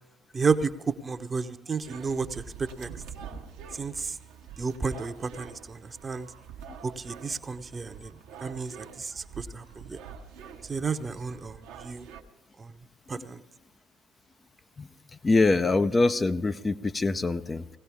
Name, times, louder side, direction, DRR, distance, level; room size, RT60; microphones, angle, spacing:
voice 1, 0.3-2.9 3.7-4.2 4.6-6.3 6.8-10.0 10.6-12.1 12.6-12.8 13.1-13.4, right 5 dB, 35° right, 10 dB, 0.8 m, -32 dB
sound 1, 1.8-12.2, right 6 dB, 70° right, 0.9 m, -46 dB
voice 2, 15.2-17.8, left 3 dB, 30° left, 10 dB, 0.6 m, -24 dB
18.5 x 16.5 x 3.6 m, 1.1 s
hypercardioid pair, 45°, 0 cm